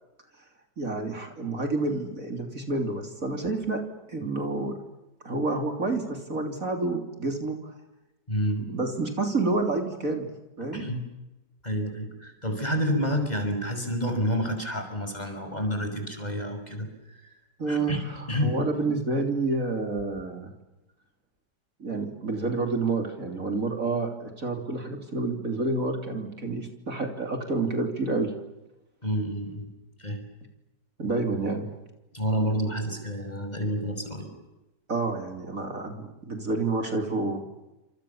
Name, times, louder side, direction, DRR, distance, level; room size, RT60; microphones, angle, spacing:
voice 1, 0.8-3.8 4.1-4.8 5.2-7.7 8.6-10.3 10.6-10.8 17.6-20.5 21.8-28.3 31.0-31.7 34.9-37.5, right 3 dB, 50° right, 4 dB, 3.6 m, -29 dB
voice 2, 8.3-8.6 10.7-11.0 11.6-16.9 17.7-18.0 18.3-18.5 29.0-29.7 30.0-30.2 32.1-34.3, equal, 25° left, 6 dB, 6.2 m, -29 dB
29.5 x 27.0 x 7.2 m, 0.99 s
omnidirectional pair, 1.8 m